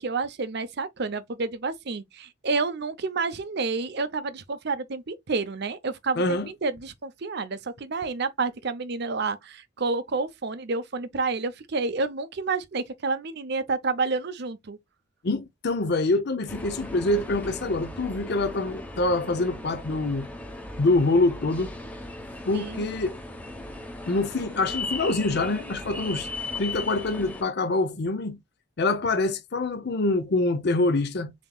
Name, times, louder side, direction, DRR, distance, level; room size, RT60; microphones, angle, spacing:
voice 1, 0.0-14.8 22.5-22.9, right 4 dB, 55° right, 0.6 m, -29 dB
voice 2, 6.2-6.5 15.2-20.3 20.8-21.7 22.5-23.2 24.1-26.3 26.6-28.4 28.8-31.3, left 2 dB, 50° left, 0.6 m, -25 dB
sound 1, 16.5-27.4, left 2 dB, 5° left, 0.9 m, -37 dB
7.2 x 2.9 x 2.2 m
head